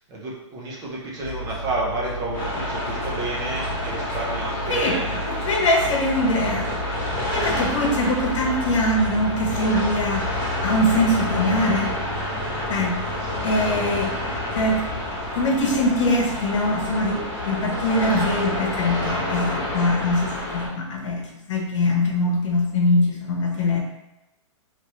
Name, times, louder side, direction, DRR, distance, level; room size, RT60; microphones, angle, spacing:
voice 1, 0.1-5.2 13.2-13.4, right 2 dB, 25° right, -3 dB, 0.7 m, -30 dB
sound 1, 1.2-20.4, left 1 dB, 45° left, 1.0 m, -34 dB
sound 2, 2.3-20.7, left 1 dB, 15° left, 0.8 m, -29 dB
voice 2, 5.3-6.7 7.3-11.9 12.7-14.8 15.3-21.2 21.5-23.8, left 1 dB, 75° left, 0 dB, 0.9 m, -23 dB
3.0 x 2.8 x 3.0 m, 1.0 s
hypercardioid pair, 155°, 16 cm